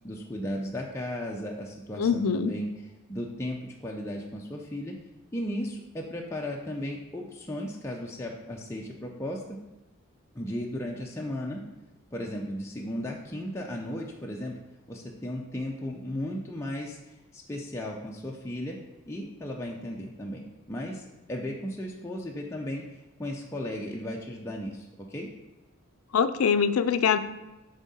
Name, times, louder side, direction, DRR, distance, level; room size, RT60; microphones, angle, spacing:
voice 1, 0.0-2.7 3.1-5.0 5.3-9.6 10.3-11.6 12.1-14.6 14.9-18.8 19.1-22.8 23.2-25.3, left 1 dB, 10° left, -2 dB, 0.4 m, -35 dB
voice 2, 2.0-2.5 26.1-27.2, left 6 dB, 75° left, 12 dB, 0.4 m, -23 dB
7.2 x 3.6 x 4.1 m, 1.1 s
head